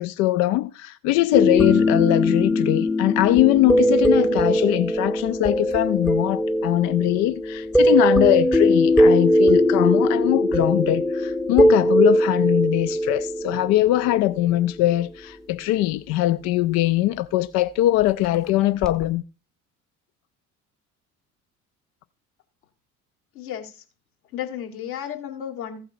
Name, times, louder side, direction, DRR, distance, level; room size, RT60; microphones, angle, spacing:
voice 1, 0.0-19.2, left 15 dB, 40° left, 0.4 m, -21 dB
sound 1, 1.3-14.5 18.8-19.0, equal, ahead, 0.8 m, -20 dB
voice 2, 23.3-23.8 24.3-25.8, left 9 dB, 70° left, 1.9 m, -33 dB
15.5 x 6.0 x 2.6 m
figure-of-eight pair, 55°, 44 cm